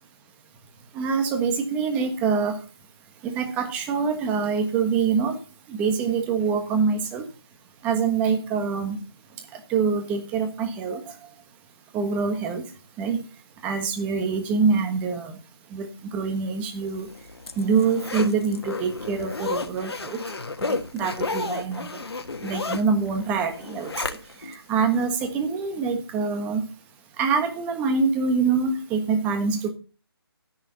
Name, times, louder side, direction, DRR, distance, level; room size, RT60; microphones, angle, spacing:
voice 1, 0.9-2.6 3.2-5.4 5.7-7.2 7.8-9.0 9.7-11.0 11.9-12.6 13.0-13.2 13.6-15.3 15.7-17.1 17.6-20.2 20.6-21.9 22.4-24.2 24.5-26.6 27.2-29.7, right 5 dB, 10° right, 6 dB, 1.4 m, -25 dB
Zipper (clothing), 17.0-24.6 25.0-25.1, left 3 dB, 75° left, 1.6 m, -32 dB
11.0 x 10.0 x 4.1 m, 0.33 s
figure-of-eight pair, 165°, 13 cm